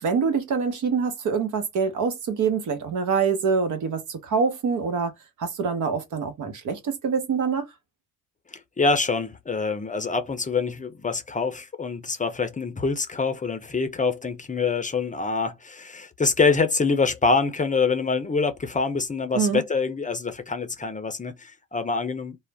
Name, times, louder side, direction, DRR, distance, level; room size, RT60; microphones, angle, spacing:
voice 1, 0.0-5.1 5.4-7.6 19.3-19.6, right 5 dB, 60° right, 1.0 m, -25 dB
voice 2, 8.5-22.4, left 4 dB, 20° left, 0.6 m, -25 dB
2.4 x 2.1 x 3.3 m
supercardioid pair, 70°, 34 cm